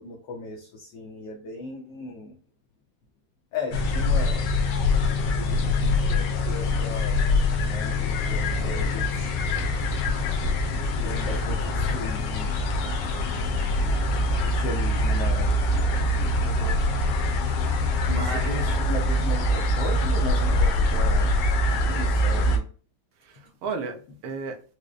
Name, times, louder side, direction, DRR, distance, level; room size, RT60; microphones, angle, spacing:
voice 1, 0.0-2.4 3.5-4.5 5.4-7.2 7.7-9.3 10.7-12.6 14.4-15.5 18.1-21.3 21.7-22.6, left 3 dB, 70° left, 1.3 m, -36 dB
sound 1, 3.7-22.6, left 1 dB, 90° left, 1.6 m, -24 dB
voice 2, 16.4-16.8 18.1-18.6 23.2-24.8, right 4 dB, 85° right, 1.6 m, -34 dB
4.8 x 2.1 x 2.4 m
omnidirectional pair, 2.3 m